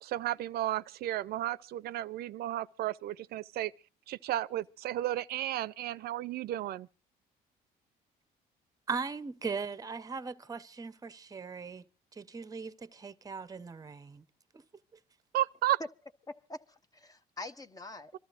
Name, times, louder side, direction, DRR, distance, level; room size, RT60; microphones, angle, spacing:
voice 1, 0.0-3.7 4.1-6.9 15.3-15.8, right 14 dB, 65° right, 0.6 m, -33 dB
voice 2, 8.9-11.8 12.1-14.2, right 5 dB, 20° right, 0.8 m, -39 dB
voice 3, 16.3-18.2, left 2 dB, 20° left, 0.9 m, -45 dB
26.5 x 13.5 x 2.5 m
cardioid pair, 110°, 17 cm